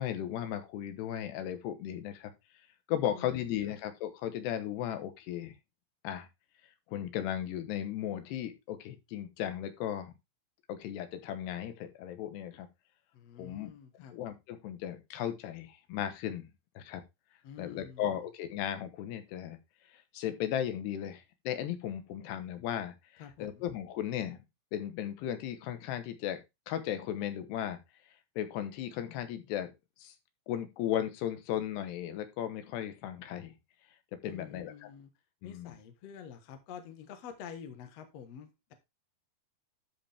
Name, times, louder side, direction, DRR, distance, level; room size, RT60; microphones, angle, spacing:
voice 1, 0.0-2.3 2.9-5.5 6.0-6.3 6.9-10.1 10.7-12.7 13.4-13.7 14.1-16.5 16.8-17.0 17.6-19.6 19.9-24.4 24.7-26.4 26.7-27.8 28.4-29.7 30.0-30.1 30.5-33.5 34.2-34.9 35.4-35.7, left 10 dB, 80° left, 9 dB, 3.2 m, -36 dB
voice 2, 3.0-3.5 13.1-14.1 17.4-18.1 23.2-23.7 34.2-35.1 35.4-38.7, left 8 dB, 60° left, 8 dB, 1.7 m, -48 dB
12.5 x 5.3 x 3.4 m, 0.23 s
omnidirectional pair, 4.7 m